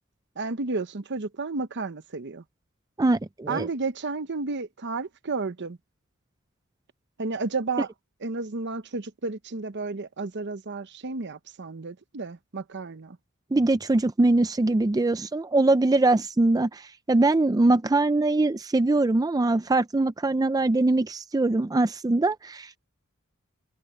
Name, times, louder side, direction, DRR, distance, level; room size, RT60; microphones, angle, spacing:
voice 1, 0.4-2.4 3.5-5.8 7.2-7.9 8.2-13.2, right 3 dB, 55° right, 0.9 m, -32 dB
voice 2, 3.0-3.7 13.5-22.8, right 2 dB, 15° right, 0.4 m, -22 dB
head